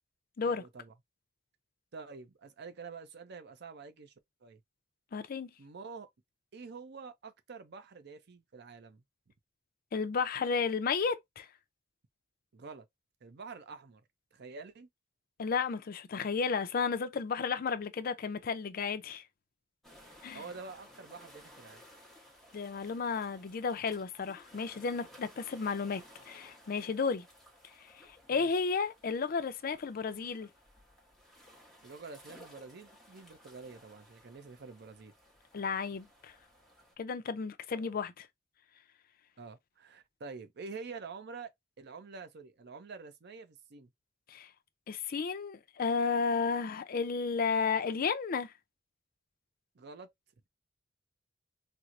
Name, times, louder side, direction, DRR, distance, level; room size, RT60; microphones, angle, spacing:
voice 1, 0.4-0.9 1.9-4.1 4.4-4.6 5.6-6.1 6.5-9.0 12.5-12.9 13.2-14.0 14.3-14.9 20.3-21.8 28.3-28.5 31.8-35.1 37.7-37.9 39.4-43.9 49.7-50.1, right 4 dB, 60° right, 0.6 m, -47 dB
voice 2, 5.1-5.5 9.9-11.5 15.4-19.2 20.2-20.4 22.5-27.3 28.3-30.5 35.5-36.1 37.0-38.3 44.3-44.5 44.9-48.5, left 5 dB, 50° left, 0.4 m, -33 dB
sound 1, 19.8-36.9, left 1 dB, ahead, 0.9 m, -58 dB
4.3 x 2.0 x 2.4 m
head